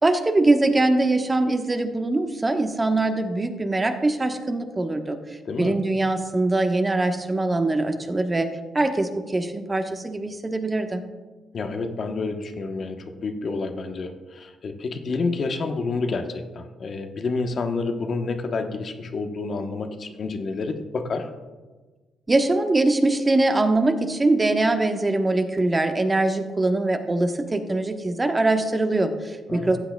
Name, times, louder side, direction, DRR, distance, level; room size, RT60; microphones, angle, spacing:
voice 1, 0.0-5.2 5.6-8.5 8.7-11.0 22.3-29.8, right 2 dB, 25° right, 5 dB, 1.1 m, -22 dB
voice 2, 5.4-5.8 11.5-21.3 29.5-29.8, left 3 dB, 55° left, 5 dB, 1.0 m, -29 dB
15.0 x 8.0 x 2.3 m, 1.3 s
supercardioid pair, 60°, 0 cm